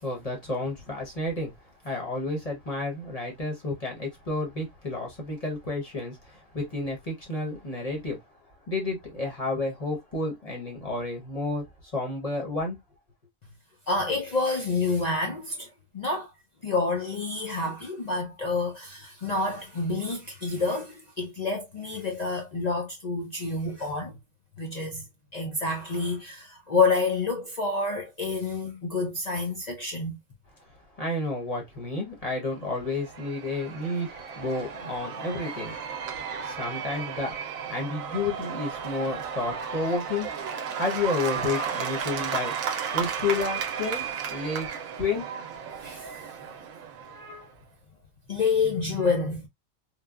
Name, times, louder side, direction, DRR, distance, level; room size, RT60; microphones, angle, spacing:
voice 1, 0.0-1.5 1.8-8.2 8.7-11.6 11.9-12.8 31.0-35.8 36.4-37.3 37.7-40.3 40.7-42.5 42.9-44.7 45.0-45.2, left 2 dB, 30° left, 0.8 m, -31 dB
voice 2, 13.9-16.3 16.6-24.1 24.6-25.0 25.3-30.2 45.8-46.1 47.1-47.5 48.3-49.5, left 3 dB, 60° left, 0.4 m, -28 dB
Cheering / Applause / Crowd, 32.7-47.4, right 7 dB, 80° right, 1.0 m, -34 dB
3.3 x 2.2 x 2.2 m
omnidirectional pair, 1.4 m